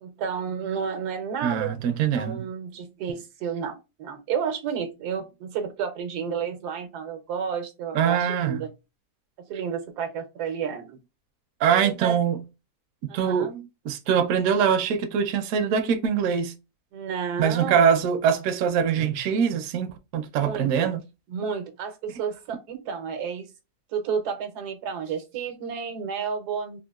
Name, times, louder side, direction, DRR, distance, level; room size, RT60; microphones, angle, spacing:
voice 1, 0.0-1.7 2.1-8.7 9.5-11.0 11.6-12.2 13.1-13.6 16.9-17.9 20.4-20.9 21.3-23.5 23.9-26.8, right 7 dB, 90° right, 1.3 m, -31 dB
voice 2, 1.4-2.4 7.9-8.6 11.6-12.4 13.1-13.5 13.9-16.5 17.4-21.0, right 7 dB, 70° right, 0.9 m, -23 dB
3.6 x 2.5 x 2.3 m
omnidirectional pair, 1.6 m